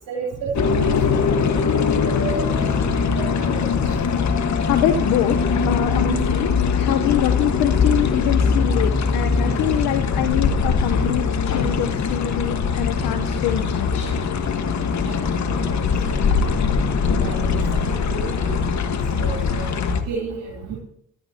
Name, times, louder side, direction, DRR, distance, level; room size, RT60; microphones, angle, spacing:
voice 1, 0.1-1.4 1.7-2.7 2.9-3.9 15.1-15.8 16.1-16.4 17.2-17.6 18.1-20.8, right 4 dB, 80° right, -2 dB, 3.4 m, -33 dB
sound 1, 0.5-20.0, left 5 dB, 55° left, 1.6 m, -21 dB
voice 2, 4.4-14.1 18.9-19.3, left 11 dB, 80° left, 8 dB, 1.0 m, -25 dB
18.0 x 12.0 x 2.9 m, 0.67 s
hypercardioid pair, 45°, 33 cm